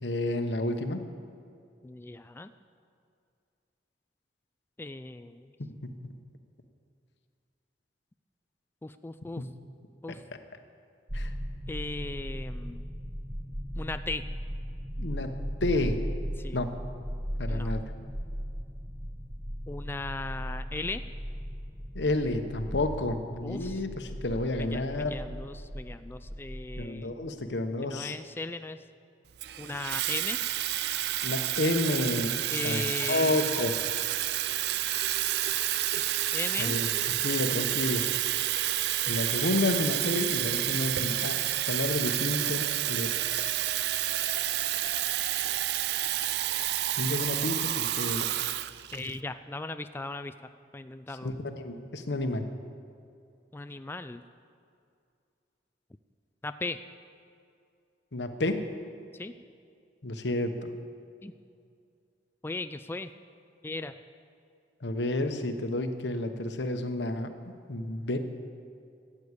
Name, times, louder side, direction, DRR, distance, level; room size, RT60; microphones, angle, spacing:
voice 1, 0.0-1.0 5.6-5.9 9.4-9.5 11.1-11.3 15.0-16.0 16.5-16.8 17.4-17.8 21.9-25.1 26.8-28.2 31.2-33.7 36.6-36.9 37.1-38.1 39.1-43.5 47.0-48.3 51.2-52.6 58.1-58.7 60.0-60.7 64.8-68.2, left 2 dB, 80° left, 8 dB, 1.1 m, -30 dB
voice 2, 1.8-2.5 4.8-5.5 8.8-9.5 10.0-10.2 11.7-12.8 13.8-14.2 16.4-16.6 17.5-17.7 19.7-21.0 23.4-23.8 24.6-27.2 27.8-28.8 29.6-30.4 32.5-33.5 35.9-36.0 36.3-36.8 48.9-50.3 50.7-51.3 53.5-54.2 56.4-56.8 59.1-59.3 61.2-61.3 62.4-63.1 63.6-64.0, left 2 dB, 15° left, 10 dB, 0.3 m, -37 dB
sound 1, 11.1-26.9, equal, 15° right, 1.1 m, -37 dB
Water tap faucet / Fill (with liquid), 29.4-49.2, right 13 dB, 65° right, 0.4 m, -29 dB
14.5 x 8.7 x 8.2 m, 2.4 s
head